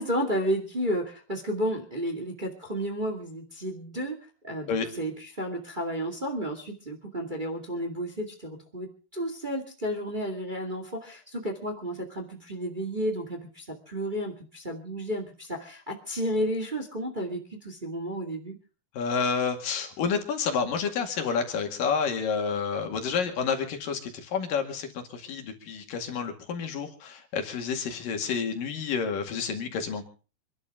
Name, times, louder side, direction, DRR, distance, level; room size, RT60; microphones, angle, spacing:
voice 1, 0.0-4.2 4.4-18.5, equal, 25° right, 2 dB, 0.9 m, -32 dB
voice 2, 18.9-30.1, left 6 dB, 55° left, 4 dB, 3.4 m, -29 dB
26.5 x 12.0 x 3.6 m, 0.36 s
omnidirectional pair, 5.3 m